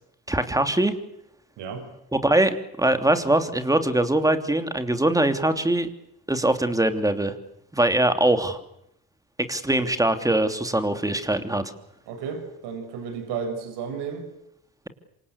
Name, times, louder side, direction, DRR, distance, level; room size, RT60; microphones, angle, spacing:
voice 1, 0.3-0.9 2.1-5.9 6.3-7.3 7.7-8.6 9.4-11.7, right 1 dB, 10° right, 8 dB, 3.0 m, -22 dB
voice 2, 12.1-14.3, right 6 dB, 75° right, 6 dB, 6.7 m, -32 dB
27.0 x 26.0 x 8.3 m, 0.78 s
cardioid pair, 95°, 41 cm